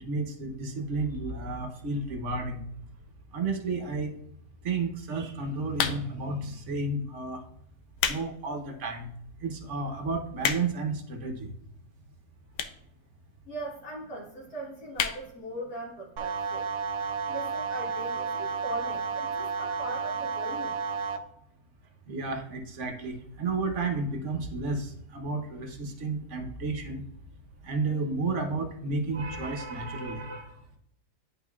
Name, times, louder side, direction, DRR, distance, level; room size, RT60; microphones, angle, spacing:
voice 1, 0.0-2.6 3.3-4.1 4.6-7.4 8.0-9.1 9.4-11.5 22.1-27.1 27.6-30.5, right 3 dB, 55° right, 4 dB, 1.1 m, -32 dB
sound 1, 5.7-6.3 7.0-7.2 7.7-8.3 8.7-8.8 9.4-9.5 9.7-9.8 10.0-10.9 11.7-11.8 12.5-12.9 13.2-13.3 13.5-13.6 13.8-13.9 14.2-14.4 14.9-15.2 15.6-15.7 15.9-16.0, left 8 dB, 90° left, 1.2 m, -30 dB
voice 2, 13.5-16.7 17.3-20.8, right 1 dB, 65° left, -6 dB, 1.9 m, -39 dB
sound 2, 16.2-21.2, right 5 dB, 80° right, 1.2 m, -32 dB
11.5 x 3.8 x 2.3 m, 0.72 s
omnidirectional pair, 1.7 m